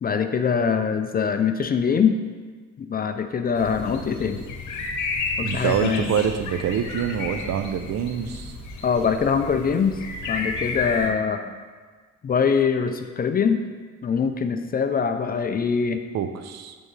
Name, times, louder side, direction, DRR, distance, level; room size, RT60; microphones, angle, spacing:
voice 1, 0.0-2.2 2.8-4.4 5.4-6.2 8.8-10.0 10.3-11.4 12.2-13.6 14.0-16.0, left 6 dB, 30° left, 8 dB, 0.4 m, -23 dB
sound 1, 3.6-11.1, left 4 dB, 80° left, 0.9 m, -32 dB
voice 2, 5.4-8.5 16.1-16.8, right 8 dB, 60° right, 8 dB, 0.5 m, -25 dB
9.0 x 3.6 x 3.2 m, 1.5 s
cardioid pair, 90°, 30 cm